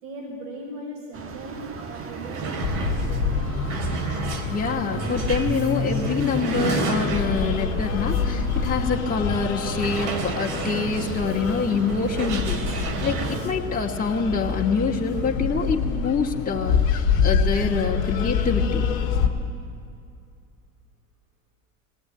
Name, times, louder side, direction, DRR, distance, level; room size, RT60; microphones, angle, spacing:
voice 1, 0.0-3.3, right 1 dB, 90° right, -2 dB, 5.0 m, -38 dB
sound 1, 1.1-13.4, right 5 dB, 35° right, 1.5 m, -38 dB
sound 2, 1.5-1.6 1.9-7.6 8.1-8.2 8.6-8.7 9.7-13.5, right 3 dB, 65° right, 3.4 m, -32 dB
sound 3, 2.6-19.3, left 5 dB, 90° left, 1.9 m, -26 dB
voice 2, 4.5-18.9, left 5 dB, 20° left, -2 dB, 2.1 m, -26 dB
20.5 x 17.5 x 9.1 m, 2.4 s
hypercardioid pair, 95°, 40 cm